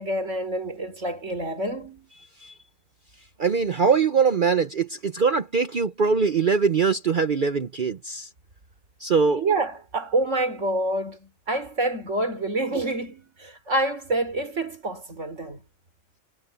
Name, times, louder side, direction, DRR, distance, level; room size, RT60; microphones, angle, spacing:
voice 1, 0.0-2.1 9.3-15.6, right 2 dB, 65° right, 3.9 m, -27 dB
voice 2, 3.4-8.3 9.0-9.4, right 5 dB, 45° right, 0.8 m, -22 dB
omnidirectional pair, 1.4 m